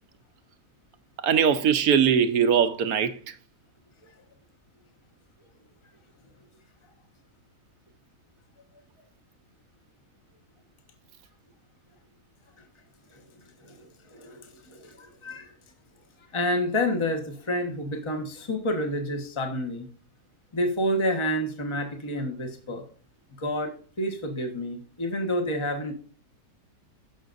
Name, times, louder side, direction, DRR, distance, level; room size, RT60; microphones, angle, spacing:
voice 1, 1.2-3.3, right 7 dB, 75° right, 1.2 m, -21 dB
voice 2, 13.6-15.5 16.3-19.9 20.5-22.8 23.4-23.7 24.0-25.9, left 1 dB, 20° left, 1.2 m, -29 dB
16.0 x 6.2 x 2.6 m
omnidirectional pair, 1.6 m